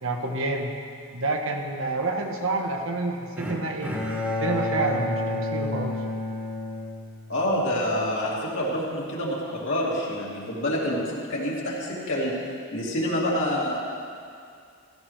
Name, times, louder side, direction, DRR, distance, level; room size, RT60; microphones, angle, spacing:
voice 1, 0.0-0.7 1.1-3.9 4.4-6.0, right 2 dB, 60° right, 2 dB, 1.2 m, -28 dB
Bowed string instrument, 3.4-7.6, left 1 dB, 5° right, 1.6 m, -30 dB
voice 2, 7.3-12.4 12.7-13.8, left 1 dB, 60° left, -5 dB, 2.8 m, -27 dB
16.5 x 14.0 x 3.3 m, 2.3 s
head